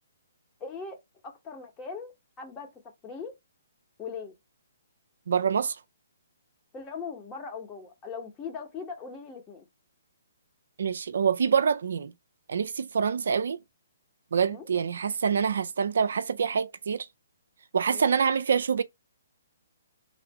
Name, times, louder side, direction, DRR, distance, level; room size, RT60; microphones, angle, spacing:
voice 1, 0.6-1.0 1.2-2.7 3.0-3.3 4.0-4.3 6.7-9.7 14.4-14.6 17.9-18.1, left 5 dB, 20° left, 1.0 m, -40 dB
voice 2, 5.3-5.8 10.8-12.1 12.5-13.6 14.3-17.1 17.7-18.8, right 6 dB, 65° right, 0.3 m, -26 dB
3.3 x 2.5 x 4.2 m
figure-of-eight pair, 135°, 0 cm